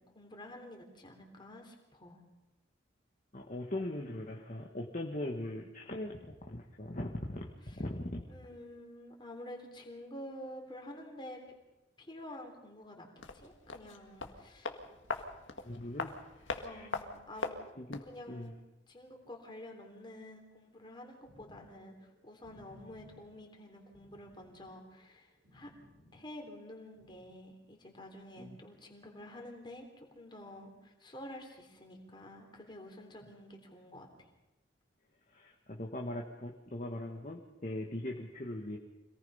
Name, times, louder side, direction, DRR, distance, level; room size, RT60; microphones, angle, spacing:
voice 1, 0.0-2.2 7.7-7.8 8.3-11.4 12.0-13.1 13.3-14.7 16.6-17.5 18.0-18.6 18.9-25.7 26.1-34.3, left 1 dB, 25° left, 2 dB, 3.4 m, -49 dB
voice 2, 3.3-8.2 15.6-16.9 17.8-18.5 28.4-28.6 35.3-38.8, left 1 dB, 40° left, 1 dB, 1.5 m, -40 dB
sound 1, 13.2-18.2 18.4-18.5, left 3 dB, 85° left, 1.9 m, -41 dB
sound 2, 21.2-26.7 26.9-27.3, equal, 75° right, 5.1 m, -60 dB
26.0 x 18.5 x 5.6 m, 1.0 s
head